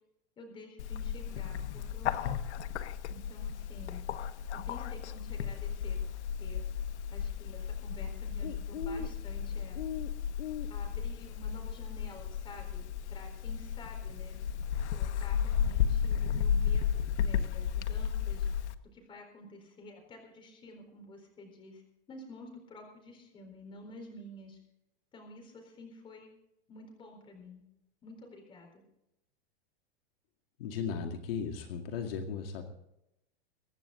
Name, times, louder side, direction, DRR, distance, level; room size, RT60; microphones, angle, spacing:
voice 1, 0.4-2.3 3.1-4.1 4.5-6.6 7.1-9.8 10.7-14.4 14.9-18.5 18.9-21.8 22.1-24.6 25.1-26.3 26.7-27.6 28.0-28.8, left 1 dB, 15° left, 2 dB, 4.2 m, -50 dB
Bird, 0.8-18.7, left 8 dB, 90° left, 1.2 m, -34 dB
voice 2, 30.6-32.7, left 6 dB, 60° left, 3 dB, 2.2 m, -36 dB
24.0 x 10.5 x 3.8 m, 0.84 s
supercardioid pair, 165°, 33 cm